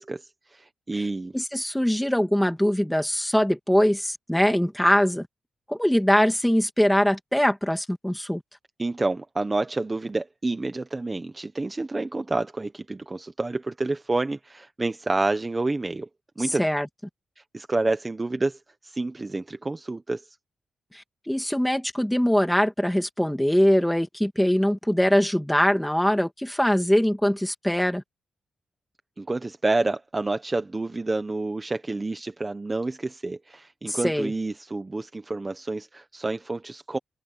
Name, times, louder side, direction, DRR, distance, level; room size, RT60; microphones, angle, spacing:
voice 1, 0.0-1.3 8.8-16.1 16.4-16.6 17.5-20.2 29.2-37.0, right 2 dB, 20° right, 0.9 m, -29 dB
voice 2, 1.3-5.3 5.7-8.4 16.6-16.9 20.9-28.0 33.9-34.3, equal, 5° left, 2.6 m, -22 dB
wide cardioid pair, 125°, 0 cm